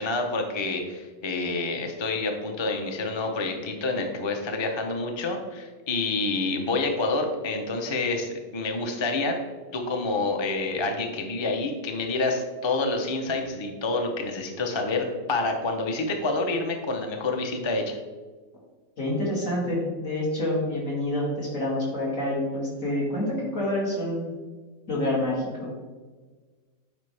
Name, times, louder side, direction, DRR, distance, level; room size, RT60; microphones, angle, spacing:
voice 1, 0.0-9.4 9.7-18.0, left 3 dB, 30° left, 3 dB, 0.6 m, -28 dB
voice 2, 19.0-24.3 24.9-25.7, left 1 dB, 75° left, -5 dB, 2.8 m, -27 dB
9.4 x 4.3 x 3.3 m, 1.4 s
omnidirectional pair, 1.4 m